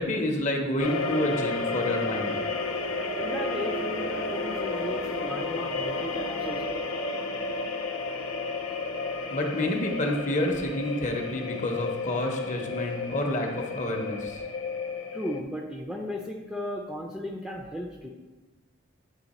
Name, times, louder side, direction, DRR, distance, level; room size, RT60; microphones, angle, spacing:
voice 1, 0.0-2.4 9.3-14.4, left 1 dB, 35° left, 3 dB, 0.7 m, -29 dB
sound 1, 0.8-15.4, left 3 dB, 80° left, 0.5 m, -32 dB
voice 2, 3.2-6.8 15.1-18.1, left 1 dB, ahead, -1 dB, 0.4 m, -35 dB
9.1 x 3.2 x 4.1 m, 1.2 s
head